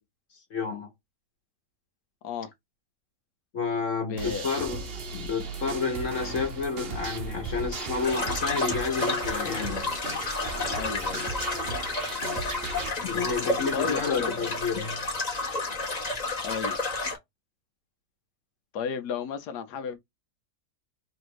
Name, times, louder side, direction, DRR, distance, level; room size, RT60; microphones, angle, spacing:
voice 1, 0.5-0.9 3.5-4.9 5.1-9.9 13.0-15.0, left 5 dB, 55° left, 1.4 m, -30 dB
voice 2, 4.1-4.5 10.7-11.3 13.7-14.3 16.4-16.8 18.7-20.0, left 6 dB, 85° left, 1.3 m, -33 dB
sound 1, 4.2-12.9, right 3 dB, 50° right, 0.8 m, -36 dB
sound 2, 8.0-17.2, left 3 dB, 30° left, 1.0 m, -31 dB
3.3 x 2.6 x 4.6 m
omnidirectional pair, 1.7 m